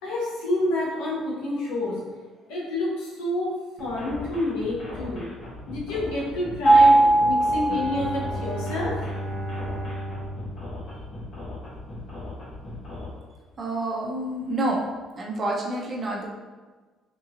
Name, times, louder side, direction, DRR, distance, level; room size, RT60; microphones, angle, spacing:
voice 1, 0.0-2.0 2.5-3.5 3.8-5.2 5.7-8.9, left 1 dB, 80° left, -5 dB, 1.0 m, -28 dB
sound 1, 3.8-13.1, left 2 dB, 55° left, 1.3 m, -38 dB
Mallet percussion, 6.7-8.6, right 2 dB, 25° left, 0.6 m, -19 dB
Bowed string instrument, 7.7-11.6, right 1 dB, 85° right, 0.6 m, -34 dB
voice 2, 13.6-14.8 15.1-16.3, right 1 dB, 40° right, -2 dB, 0.8 m, -28 dB
3.7 x 2.8 x 2.5 m, 1.3 s
hypercardioid pair, 60°, 0 cm